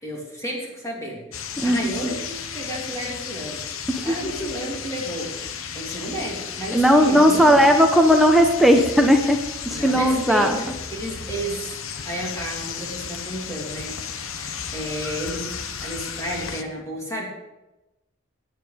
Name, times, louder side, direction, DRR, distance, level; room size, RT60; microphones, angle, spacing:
voice 1, 0.0-3.6 4.0-7.7 9.7-11.8 12.0-15.5 15.8-17.3, right 1 dB, 15° left, -3 dB, 3.1 m, -32 dB
sound 1, 1.3-16.6, left 7 dB, 75° left, 1.1 m, -34 dB
voice 2, 1.6-1.9 3.9-4.5 6.7-10.6, equal, ahead, 3 dB, 0.9 m, -17 dB
16.5 x 9.4 x 5.2 m, 1.0 s
head